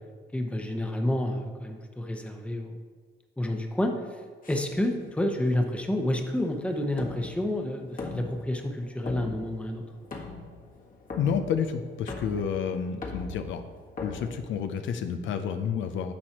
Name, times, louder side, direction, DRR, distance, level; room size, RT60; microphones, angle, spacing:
voice 1, 0.3-2.8 3.4-4.2 4.5-9.8, left 1 dB, 5° left, 3 dB, 0.9 m, -29 dB
sound 1, 4.4-15.1, left 3 dB, 45° left, 1.5 m, -42 dB
voice 2, 11.2-13.6 14.0-16.1, left 7 dB, 75° left, 8 dB, 0.6 m, -30 dB
10.0 x 6.3 x 3.0 m, 1.5 s
cardioid pair, 90°, 20 cm